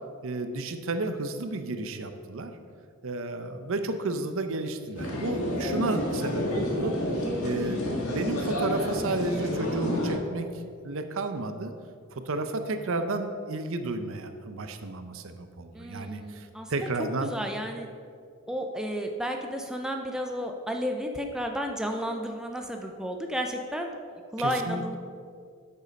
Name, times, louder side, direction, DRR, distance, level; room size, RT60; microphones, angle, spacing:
voice 1, 0.2-2.6 3.0-6.9 7.4-10.5 10.8-11.7 12.1-17.3 24.4-24.8, right 2 dB, 60° right, 8 dB, 0.7 m, -32 dB
sound 1, 4.9-10.1, left 1 dB, 70° left, 1.8 m, -29 dB
voice 2, 15.7-16.9 17.2-17.9 18.5-25.0, equal, 5° right, 3 dB, 0.5 m, -32 dB
8.2 x 6.7 x 5.2 m, 2.2 s
head